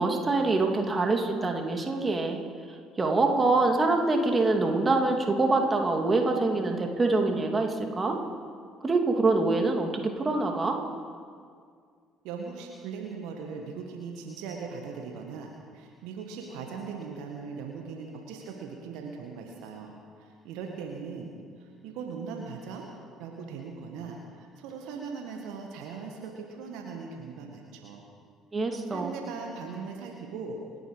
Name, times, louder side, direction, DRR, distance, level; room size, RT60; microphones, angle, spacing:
voice 1, 0.0-2.4 3.0-8.2 8.8-10.8 28.5-29.1, right 3 dB, 30° right, 3 dB, 2.6 m, -25 dB
voice 2, 12.2-19.9 20.2-22.9 23.2-28.0 28.6-30.6, right 5 dB, 65° right, 1 dB, 1.8 m, -39 dB
28.0 x 10.0 x 5.0 m, 2.1 s
figure-of-eight pair, 50°, 0 cm